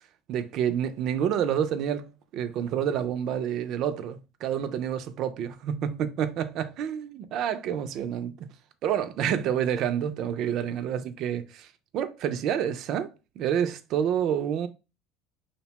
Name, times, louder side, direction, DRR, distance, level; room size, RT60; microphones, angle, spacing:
voice 1, 0.3-8.5 8.8-11.7 11.9-13.1 13.4-14.7, right 9 dB, 55° right, 0.4 m, -28 dB
2.6 x 2.1 x 2.9 m
supercardioid pair, 105°, 0 cm